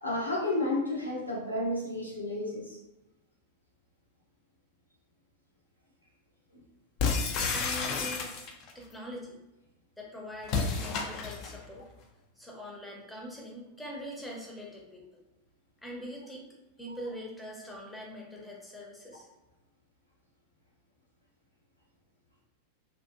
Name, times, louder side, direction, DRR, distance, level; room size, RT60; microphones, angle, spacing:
voice 1, 0.0-2.8 6.5-6.6, left 1 dB, 85° left, -4 dB, 0.7 m, -31 dB
sound 1, 7.0-8.7 10.4-11.6, left 4 dB, 40° left, 0.4 m, -30 dB
voice 2, 7.5-8.5 8.7-9.4 10.0-11.9 12.4-15.0 15.8-16.5 16.8-19.3, equal, 5° left, -2 dB, 0.7 m, -43 dB
2.7 x 2.2 x 2.5 m, 0.97 s
figure-of-eight pair, 90°, 0 cm